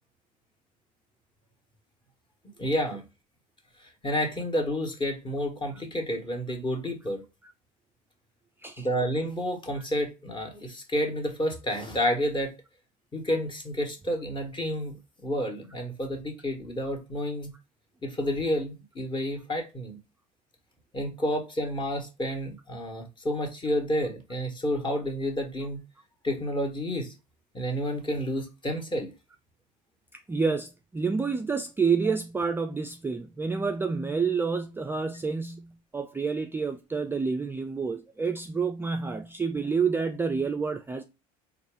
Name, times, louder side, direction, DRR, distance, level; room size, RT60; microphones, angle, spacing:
voice 1, 2.6-3.0 3.8-7.2 8.8-12.5 13.1-14.9 15.2-17.5 18.0-20.0 20.9-25.8 26.2-27.1 27.5-29.1, equal, 25° left, 1.3 m, -30 dB
voice 2, 30.1-41.0, right 5 dB, 10° right, 0.3 m, -29 dB
4.0 x 2.5 x 3.5 m
supercardioid pair, 80°, 19 cm